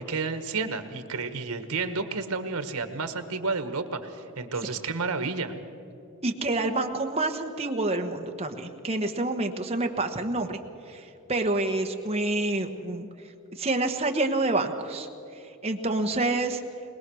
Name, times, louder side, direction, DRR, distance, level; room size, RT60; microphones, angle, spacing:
voice 1, 0.0-5.5, right 4 dB, 85° right, 9 dB, 1.4 m, -31 dB
voice 2, 6.2-10.6 10.9-13.1 13.6-15.1 15.6-16.6, right 2 dB, 25° right, 4 dB, 1.2 m, -28 dB
22.0 x 20.5 x 6.3 m, 2.7 s
head